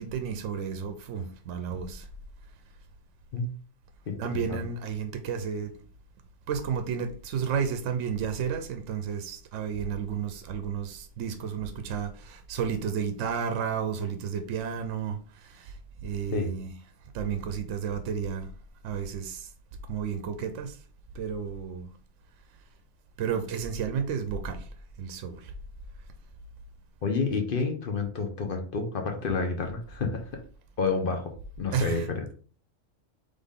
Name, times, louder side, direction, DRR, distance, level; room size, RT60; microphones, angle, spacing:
voice 1, 0.0-2.0 4.2-5.7 6.5-15.2 15.5-15.7 16.0-16.8 17.1-18.5 18.8-19.5 19.9-20.7 21.2-21.9 23.2-24.6 25.0-25.5 31.7-32.1, right 7 dB, 70° right, 0.9 m, -32 dB
voice 2, 4.1-4.6 16.3-16.5 27.0-30.4 30.8-32.3, left 4 dB, 50° left, 0.8 m, -30 dB
3.9 x 3.4 x 3.6 m
omnidirectional pair, 1.4 m